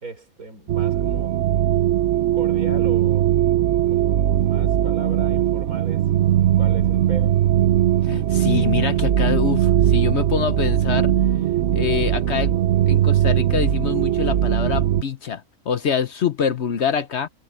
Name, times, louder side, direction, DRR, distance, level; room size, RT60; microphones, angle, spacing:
voice 1, 0.0-1.4 2.3-3.4 3.7-6.1 6.6-7.4, right 2 dB, 75° right, 4.9 m, -37 dB
sound 1, 0.7-15.0, right 11 dB, 60° right, 1.0 m, -19 dB
voice 2, 8.0-11.1 11.7-12.5 12.9-17.3, left 7 dB, 55° left, 1.0 m, -25 dB
omnidirectional pair, 1.5 m